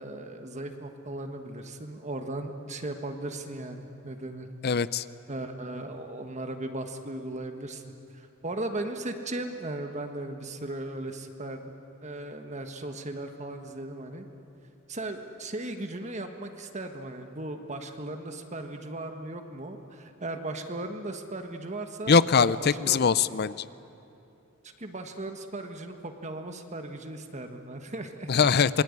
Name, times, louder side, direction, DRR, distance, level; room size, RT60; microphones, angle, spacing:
voice 1, 0.0-4.5 5.3-11.7 12.0-14.3 14.9-23.0 24.8-28.4, right 2 dB, 35° right, 6 dB, 1.5 m, -37 dB
voice 2, 4.6-5.0 22.1-23.5 28.3-28.8, left 5 dB, 50° left, 16 dB, 0.5 m, -22 dB
27.0 x 21.5 x 9.7 m, 2.8 s
head